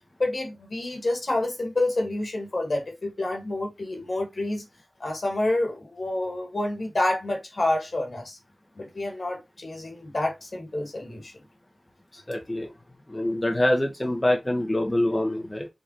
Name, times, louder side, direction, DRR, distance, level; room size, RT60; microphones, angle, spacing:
voice 1, 0.2-4.6 5.0-8.4 8.7-11.3, left 2 dB, 65° left, 1.6 m, -28 dB
voice 2, 12.1-12.7 13.1-15.7, left 1 dB, 25° left, 0.8 m, -25 dB
5.0 x 2.4 x 2.8 m
cardioid pair, 45°, 0 cm